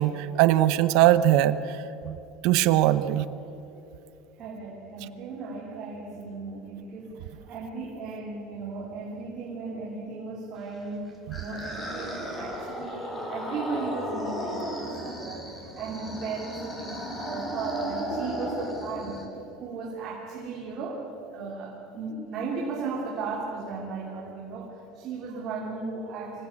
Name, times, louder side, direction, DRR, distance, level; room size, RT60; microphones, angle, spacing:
voice 1, 0.0-1.8 2.0-2.2 2.4-3.3 11.3-11.4, right 13 dB, 55° right, 12 dB, 0.9 m, -21 dB
voice 2, 4.4-19.3 19.6-21.1 21.3-26.5, right 4 dB, 35° right, -3 dB, 3.2 m, -36 dB
sound 1, 10.8-19.3, equal, 10° left, 3.6 m, -35 dB
26.0 x 17.0 x 8.6 m, 2.9 s
cardioid pair, 175°, 0 cm